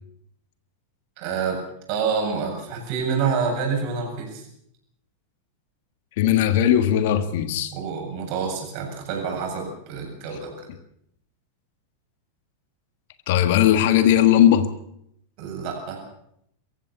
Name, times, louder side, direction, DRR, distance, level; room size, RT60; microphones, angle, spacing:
voice 1, 1.2-1.6 1.9-4.5 7.7-10.7 15.4-16.0, right 5 dB, 45° right, 2 dB, 7.8 m, -27 dB
voice 2, 6.2-7.7 10.3-10.4 13.3-14.7, left 11 dB, 50° left, 10 dB, 1.6 m, -18 dB
24.5 x 15.0 x 7.1 m, 0.73 s
figure-of-eight pair, 90°, 0 cm